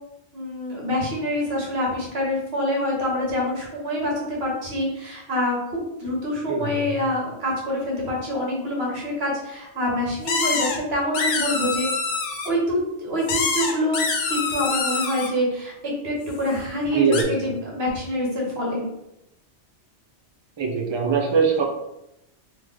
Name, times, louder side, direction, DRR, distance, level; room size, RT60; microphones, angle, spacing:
voice 1, 0.3-11.9 12.4-14.0 14.3-15.7 16.0-18.9, left 1 dB, 65° right, -2 dB, 1.2 m, -26 dB
voice 2, 6.5-7.1 16.9-17.5 20.6-21.6, right 5 dB, 50° right, 1 dB, 0.3 m, -22 dB
sound 1, 10.3-10.8 11.1-12.5 13.3-15.3 17.1-17.2, left 4 dB, 80° left, 0.9 m, -25 dB
3.1 x 2.4 x 3.5 m, 0.86 s
omnidirectional pair, 1.2 m